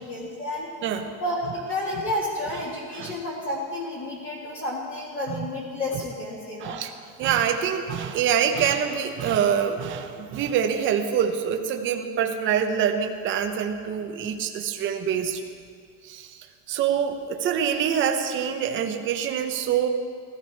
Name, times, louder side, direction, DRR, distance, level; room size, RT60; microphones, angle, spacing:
voice 1, 0.0-0.7 1.2-6.8, left 1 dB, 25° left, -5 dB, 1.9 m, -31 dB
voice 2, 6.6-6.9 7.2-15.4 16.0-16.4 16.7-19.9, right 8 dB, 25° right, 5 dB, 0.8 m, -25 dB
15.5 x 15.0 x 4.6 m, 2.1 s
cardioid pair, 170°, 45 cm